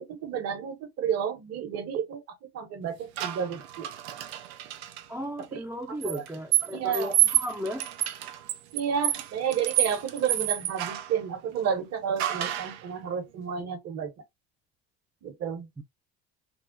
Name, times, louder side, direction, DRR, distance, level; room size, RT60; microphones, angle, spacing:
voice 1, 0.0-3.9 5.4-5.6 6.0-6.2 6.7-7.2 8.7-14.1 15.2-15.7, right 7 dB, 55° right, 1.1 m, -31 dB
sound 1, 3.2-5.0 6.0-11.2 12.2-12.8, right 14 dB, 90° right, 0.6 m, -29 dB
voice 2, 5.1-7.9 15.8-15.9, equal, 10° right, 0.5 m, -35 dB
3.5 x 2.0 x 2.5 m
supercardioid pair, 80°, 31 cm